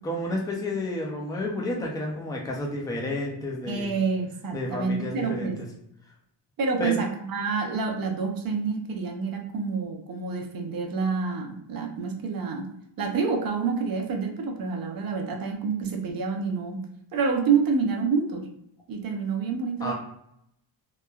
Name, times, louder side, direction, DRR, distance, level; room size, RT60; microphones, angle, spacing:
voice 1, 0.0-3.9 4.5-5.5 6.8-7.0 19.8-19.9, left 1 dB, 10° left, -1 dB, 0.3 m, -31 dB
voice 2, 3.7-5.6 6.6-12.7 13.0-16.9 17.1-18.5 18.9-19.9, right 5 dB, 50° right, 3 dB, 0.5 m, -28 dB
3.0 x 2.1 x 2.2 m, 0.76 s
wide cardioid pair, 165°, 46 cm